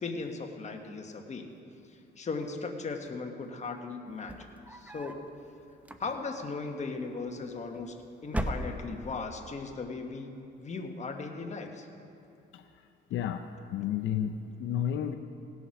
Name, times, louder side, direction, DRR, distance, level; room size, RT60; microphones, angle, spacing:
voice 1, 0.0-1.5 1.9-4.3 4.7-5.2 6.0-8.0 8.2-11.9, left 4 dB, 35° left, 4 dB, 1.3 m, -37 dB
sound 1, 4.1-5.3 5.8-6.5 7.4-7.9 8.2-9.2, right 1 dB, 5° right, 0.7 m, -37 dB
voice 2, 13.1-15.1, left 9 dB, 75° left, 6 dB, 0.6 m, -32 dB
17.0 x 7.1 x 5.9 m, 2.6 s
cardioid pair, 90°, 20 cm